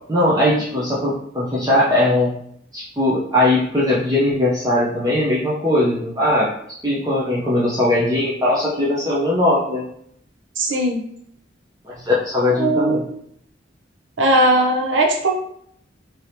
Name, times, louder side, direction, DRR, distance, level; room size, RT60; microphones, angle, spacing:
voice 1, 0.1-2.3 2.7-6.5 6.8-9.8 11.8-13.0, left 1 dB, 20° right, -6 dB, 0.5 m, -19 dB
voice 2, 10.6-11.0 12.6-13.0 14.2-15.3, right 1 dB, 70° right, 2 dB, 0.6 m, -18 dB
2.8 x 2.7 x 3.2 m, 0.69 s
head